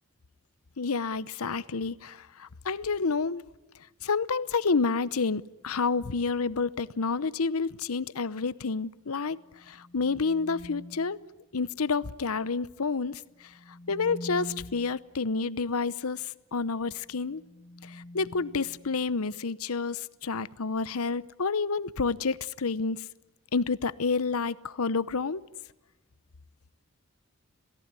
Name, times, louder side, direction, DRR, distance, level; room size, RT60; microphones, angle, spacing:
voice 1, 0.8-2.2 2.7-3.4 4.0-9.4 9.9-11.2 11.5-13.2 13.9-16.2 16.5-17.4 18.1-23.0 23.5-25.4, left 4 dB, 90° left, 17 dB, 0.8 m, -29 dB
sound 1, 9.3-11.2 13.3-15.0 17.0-19.4, left 1 dB, 35° left, 1.8 m, -46 dB
27.5 x 18.0 x 9.7 m, 1.0 s
head